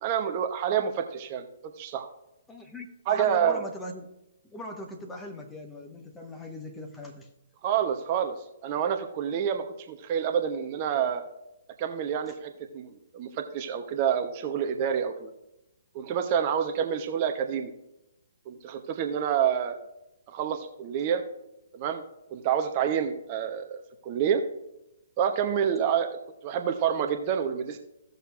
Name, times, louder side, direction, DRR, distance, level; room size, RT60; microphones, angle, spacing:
voice 1, 0.0-1.4 1.8-2.1 3.1-3.6 7.6-11.2 11.8-15.3 15.9-17.7 18.5-19.8 20.3-21.2 21.7-22.0 22.3-24.4 25.2-26.1 26.4-27.8, right 8 dB, 35° right, 5 dB, 0.9 m, -28 dB
voice 2, 2.5-4.1 4.4-7.3 12.3-12.4, left 1 dB, 10° left, 2 dB, 1.3 m, -40 dB
16.5 x 6.7 x 2.5 m, 0.88 s
figure-of-eight pair, 125°, 0 cm